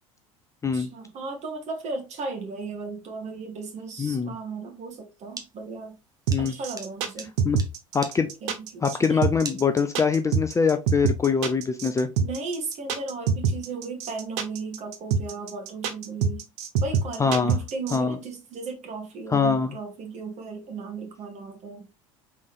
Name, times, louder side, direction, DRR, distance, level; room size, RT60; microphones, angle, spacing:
voice 1, 0.7-6.0 6.4-7.3 8.4-9.2 12.2-16.4 16.8-21.8, right 4 dB, 40° right, 1.5 m, -36 dB
voice 2, 4.0-4.4 6.3-6.5 7.4-7.6 7.9-8.3 8.8-12.1 17.2-17.6 17.9-18.2 19.3-19.8, left 5 dB, 15° left, 0.5 m, -23 dB
sound 1, 5.2-10.2, right 4 dB, 20° right, 0.9 m, -42 dB
sound 2, 6.3-18.0, right 6 dB, 60° right, 0.8 m, -25 dB
4.0 x 3.5 x 3.2 m
figure-of-eight pair, 70°, 17 cm